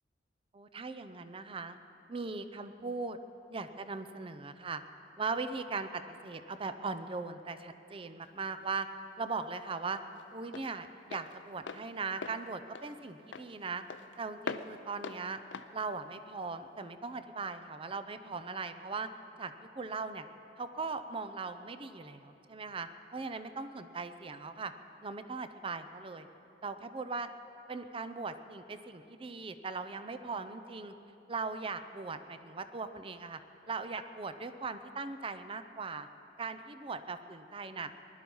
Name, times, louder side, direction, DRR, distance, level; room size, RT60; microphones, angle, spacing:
voice 1, 0.5-1.8 2.1-3.2 3.5-4.8 5.2-8.9 9.2-10.0 10.3-13.8 14.2-15.4 15.7-19.1 19.4-20.3 20.6-24.7 25.0-26.3 26.6-27.3 27.7-30.9 31.3-33.4 33.7-36.1 36.4-37.9, right 4 dB, 30° right, 10 dB, 0.6 m, -39 dB
Walk footsteps, 8.3-16.9, left 5 dB, 90° left, 0.5 m, -45 dB
20.0 x 11.5 x 5.5 m, 2.9 s
head